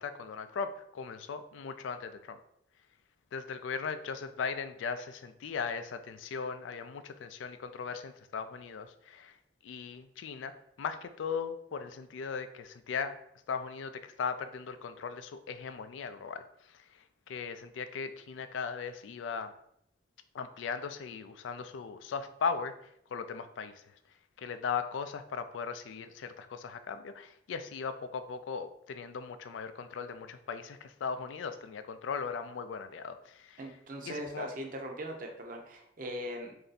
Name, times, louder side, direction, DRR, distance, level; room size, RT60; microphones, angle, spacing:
voice 1, 0.0-2.4 3.3-9.4 9.6-13.2 13.5-19.5 20.3-23.9 24.4-33.6 34.0-34.5, left 5 dB, 85° left, 10 dB, 0.3 m, -38 dB
voice 2, 33.6-36.5, equal, 45° right, 3 dB, 0.6 m, -40 dB
3.3 x 2.6 x 3.9 m, 0.72 s
head